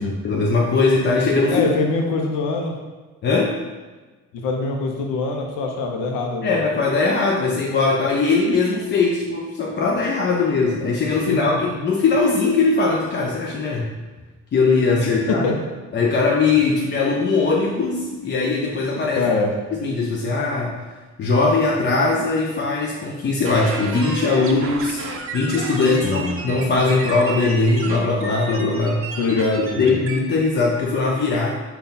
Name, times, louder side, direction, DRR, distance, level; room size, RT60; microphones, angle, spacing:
voice 1, 0.2-1.7 3.2-3.5 6.4-13.9 14.5-15.5 15.9-19.2 19.7-20.7 21.2-25.1 25.3-29.0 29.3-29.4 29.8-31.6, left 3 dB, 35° left, -2 dB, 0.4 m, -20 dB
voice 2, 1.5-2.7 4.3-6.6 11.1-11.6 14.9-15.5 19.1-19.5 26.0-26.4 29.2-30.0, left 3 dB, 85° left, 1 dB, 0.5 m, -24 dB
sound 1, 23.4-30.2, right 4 dB, 45° right, 0.5 m, -33 dB
3.8 x 2.3 x 3.7 m, 1.3 s
cardioid pair, 90°, 30 cm